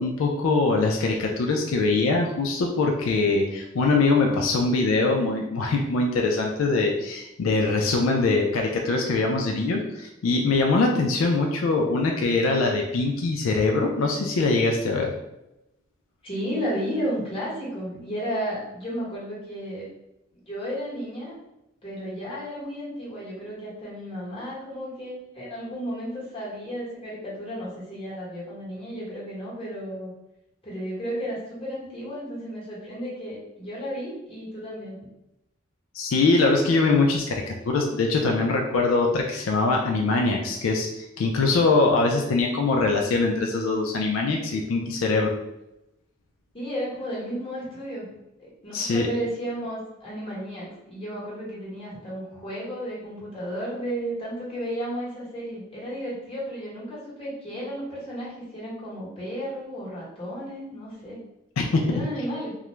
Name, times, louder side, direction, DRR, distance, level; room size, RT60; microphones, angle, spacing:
voice 1, 0.0-15.1 35.9-45.3 48.7-49.1 61.6-61.8, left 3 dB, 85° left, 1 dB, 0.4 m, -23 dB
voice 2, 16.2-19.9 20.3-21.4 21.8-30.1 30.6-35.0 46.5-48.1 48.4-61.2 61.8-62.6, equal, 30° left, -7 dB, 1.0 m, -33 dB
2.3 x 2.1 x 3.0 m, 0.91 s
head